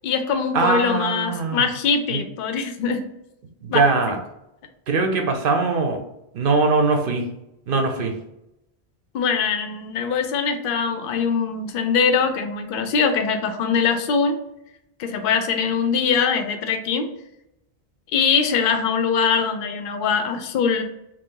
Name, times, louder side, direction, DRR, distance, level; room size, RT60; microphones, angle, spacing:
voice 1, 0.0-3.0 3.7-3.8 9.1-14.4 15.0-17.1 18.1-20.8, left 6 dB, 60° left, 6 dB, 0.6 m, -22 dB
voice 2, 0.5-1.6 2.1-2.2 3.6-4.2 4.9-6.0 6.3-7.3 7.7-8.1, right 3 dB, 60° right, 4 dB, 0.8 m, -21 dB
3.1 x 2.4 x 3.7 m, 0.86 s
omnidirectional pair, 1.1 m